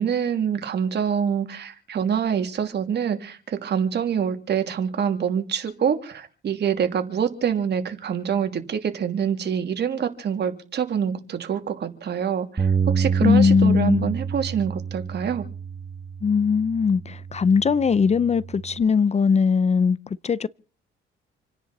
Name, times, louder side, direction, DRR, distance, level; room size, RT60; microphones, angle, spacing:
voice 1, 0.0-15.4, right 7 dB, 55° right, 2.8 m, -26 dB
Bass guitar, 12.6-18.8, right 6 dB, 25° right, 1.9 m, -28 dB
voice 2, 13.2-14.1 16.2-20.0 20.2-20.5, left 5 dB, 35° left, 0.6 m, -20 dB
28.5 x 10.0 x 4.2 m
cardioid pair, 90°, 20 cm